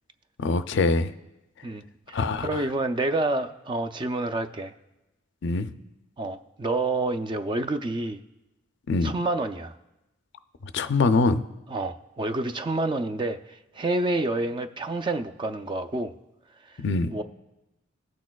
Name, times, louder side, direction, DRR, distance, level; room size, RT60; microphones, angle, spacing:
voice 1, 0.4-1.1 2.1-2.6 5.4-5.7 8.9-9.1 10.7-11.4 16.8-17.1, left 3 dB, 60° left, 11 dB, 0.4 m, -23 dB
voice 2, 1.6-4.7 6.2-8.2 9.0-9.7 11.7-16.1 16.7-16.8 17.1-17.2, right 2 dB, 25° right, 9 dB, 0.3 m, -28 dB
18.5 x 6.2 x 2.3 m, 0.98 s
head